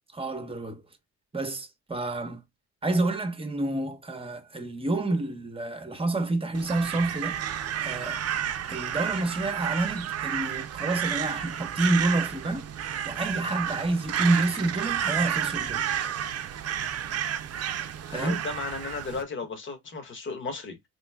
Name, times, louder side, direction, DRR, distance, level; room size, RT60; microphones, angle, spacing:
voice 1, 0.1-0.8 1.3-2.4 2.8-7.4 7.8-8.2 8.7-12.7 13.1-15.8 18.1-18.4, right 2 dB, 20° right, 1.0 m, -28 dB
Crow, 6.5-19.2, right 9 dB, 55° right, 0.6 m, -31 dB
voice 2, 18.1-20.8, left 4 dB, 40° left, 1.4 m, -35 dB
3.7 x 3.1 x 2.3 m
cardioid pair, 90°, 30 cm